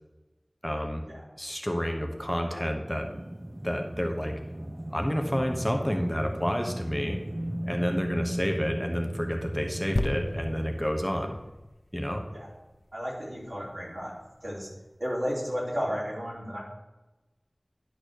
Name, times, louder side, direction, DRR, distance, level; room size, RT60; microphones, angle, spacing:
voice 1, 0.6-1.0 1.4-3.1 3.6-4.3 4.9-7.2 7.6-11.4 11.9-12.2, equal, 10° left, 3 dB, 1.1 m, -29 dB
sound 1, 2.9-10.9, right 1 dB, 30° right, 0.6 m, -36 dB
sound 2, 10.0-13.5 14.2-14.3, left 1 dB, 85° left, 0.6 m, -35 dB
voice 2, 12.9-14.1 14.4-14.7 15.0-16.6, equal, 75° right, -5 dB, 3.4 m, -33 dB
10.5 x 3.9 x 6.6 m, 1.1 s
wide cardioid pair, 45°, 0 cm